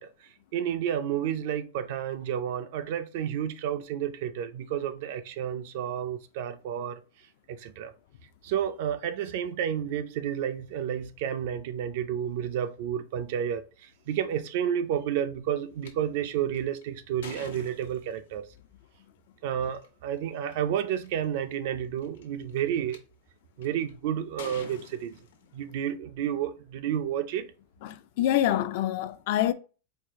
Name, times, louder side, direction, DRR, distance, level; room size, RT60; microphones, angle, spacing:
voice 1, 0.0-7.0 7.5-7.9 8.4-18.4 19.4-23.0 23.6-25.2 25.5-27.5, right 9 dB, 50° right, 0.4 m, -31 dB
sound 1, 15.8-15.9 16.5-18.4 19.7-19.9 20.5-20.6 20.8-21.3 22.0-23.0 23.6-23.9 24.4-25.8, left 5 dB, 85° left, 1.0 m, -46 dB
voice 2, 27.8-29.5, left 12 dB, 50° left, 0.3 m, -26 dB
4.6 x 2.4 x 3.5 m
supercardioid pair, 165°, 0 cm